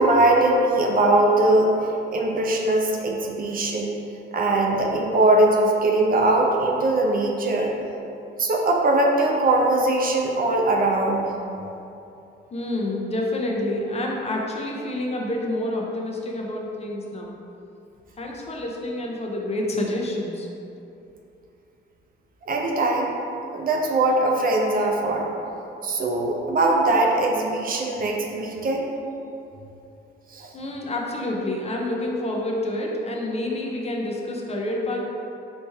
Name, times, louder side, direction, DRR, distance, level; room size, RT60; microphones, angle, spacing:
voice 1, 0.0-1.7 2.1-4.0 4.3-7.7 8.4-11.3 22.5-23.1 23.5-25.3 25.8-28.9 30.3-30.5, right 2 dB, 45° right, 0 dB, 0.6 m, -21 dB
voice 2, 12.5-17.4 18.2-20.5 30.5-35.0, left 1 dB, 30° left, -1 dB, 0.6 m, -28 dB
4.1 x 3.2 x 3.4 m, 2.8 s
cardioid pair, 90°, 20 cm